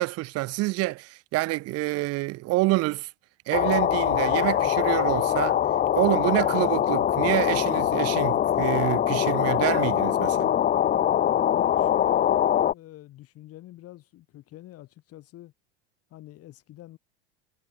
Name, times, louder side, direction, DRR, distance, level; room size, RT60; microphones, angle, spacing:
voice 1, 0.0-3.1 3.5-5.6 5.9-10.5, right 20 dB, 50° right, 1.3 m, -27 dB
sound 1, 3.5-12.7, left 10 dB, 30° left, 0.7 m, -23 dB
voice 2, 11.5-15.5 16.1-17.0, left 15 dB, 50° left, 4.0 m, -46 dB
hypercardioid pair, 85°, 31 cm